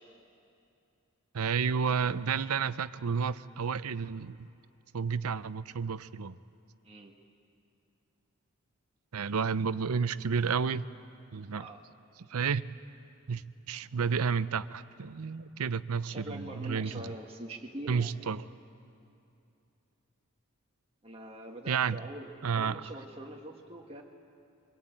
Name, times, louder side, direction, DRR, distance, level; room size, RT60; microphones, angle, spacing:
voice 1, 1.3-4.5 4.9-6.4 9.1-10.9 11.3-11.7 12.3-12.6 13.3-13.4 13.7-17.1 17.9-18.4 21.7-22.0 22.4-22.8, right 6 dB, 85° right, 15 dB, 0.6 m, -31 dB
voice 2, 6.8-7.1 11.5-11.8 16.0-18.1 21.0-24.0, right 1 dB, 25° right, 0 dB, 1.5 m, -43 dB
24.0 x 22.0 x 8.9 m, 2.6 s
head